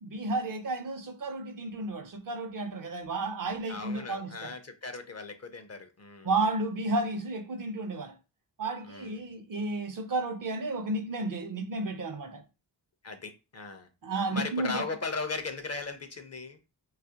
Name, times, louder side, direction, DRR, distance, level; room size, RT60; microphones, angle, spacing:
voice 1, 0.0-4.5 6.2-8.2 8.6-12.4 14.0-14.8, right 2 dB, 50° right, 0.5 m, -32 dB
voice 2, 3.7-6.3 8.8-9.2 13.0-13.9 14.3-16.6, left 3 dB, 35° left, 0.5 m, -37 dB
2.4 x 2.1 x 2.7 m
cardioid pair, 40°, 44 cm